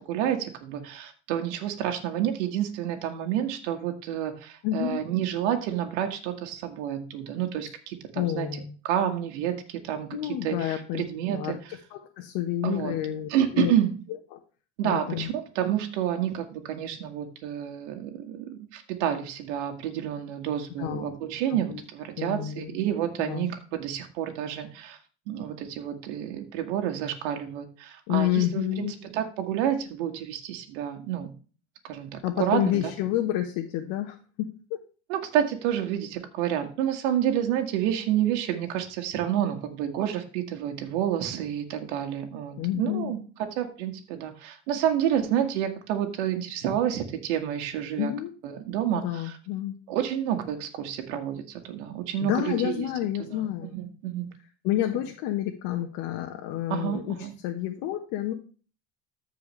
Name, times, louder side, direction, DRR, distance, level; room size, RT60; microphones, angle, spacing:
voice 1, 0.1-11.8 12.6-13.0 13.3-13.9 14.8-25.0 25.3-31.3 31.8-32.9 35.1-48.1 48.4-49.4 49.9-52.9 53.2-54.3 54.9-55.0 56.7-57.3, right 10 dB, 75° right, 4 dB, 1.8 m, -29 dB
voice 2, 4.6-5.0 8.1-8.7 10.1-11.0 11.3-11.6 11.9-13.7 14.3-14.4 14.8-15.3 20.8-21.1 22.2-22.8 23.3-23.5 28.1-28.9 32.2-34.8 42.6-43.1 48.0-48.3 48.9-49.8 52.2-53.9 54.6-57.2 57.4-58.3, left 13 dB, 70° left, 3 dB, 1.4 m, -29 dB
14.0 x 4.7 x 3.2 m, 0.36 s
hypercardioid pair, 85°, 35 cm